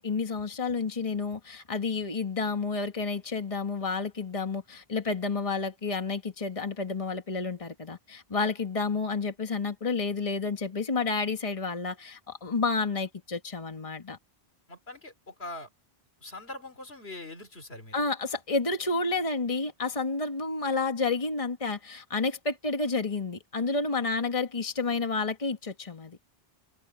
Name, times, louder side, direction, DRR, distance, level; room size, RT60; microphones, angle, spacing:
voice 1, 0.0-14.2 17.9-26.2, left 4 dB, 35° left, 1.7 m, -30 dB
voice 2, 14.7-15.7 16.2-18.0, left 2 dB, 80° left, 3.3 m, -42 dB
omnidirectional pair, 1.0 m